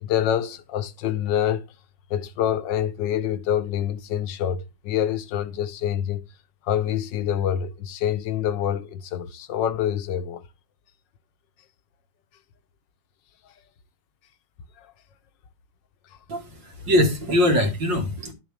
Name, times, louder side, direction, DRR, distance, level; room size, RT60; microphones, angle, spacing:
voice 1, 0.0-1.7 2.1-6.2 6.6-10.4 14.8-14.9, left 10 dB, 80° left, 1.5 m, -26 dB
voice 2, 16.3-18.3, left 1 dB, 90° right, 2.8 m, -22 dB
11.0 x 7.0 x 3.4 m
omnidirectional pair, 1.9 m